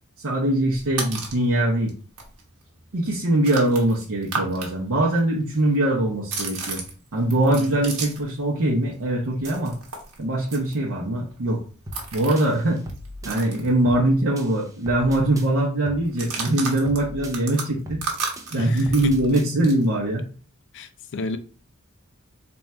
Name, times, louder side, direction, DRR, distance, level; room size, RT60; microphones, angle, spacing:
voice 1, 0.2-1.9 2.9-6.8 7.1-9.7 10.2-11.6 12.1-12.8 13.2-18.0 18.5-20.2, right 1 dB, 65° right, 0.7 m, -22 dB
sound 1, 0.7-1.5 1.9-2.0 2.2-4.7 5.0-8.4 8.6-14.3 14.6-14.7 15.0-15.3 16.0-19.9, right 4 dB, 85° right, 1.0 m, -34 dB
sound 2, 11.9-12.1 12.4-13.4 13.9-14.1 14.4-15.5 15.9-16.1 16.4-17.4 17.9-18.1 18.4-19.5, equal, 15° right, 0.5 m, -39 dB
voice 2, 18.6-19.5 20.7-21.4, left 4 dB, 60° left, 0.4 m, -31 dB
3.5 x 2.3 x 4.1 m
head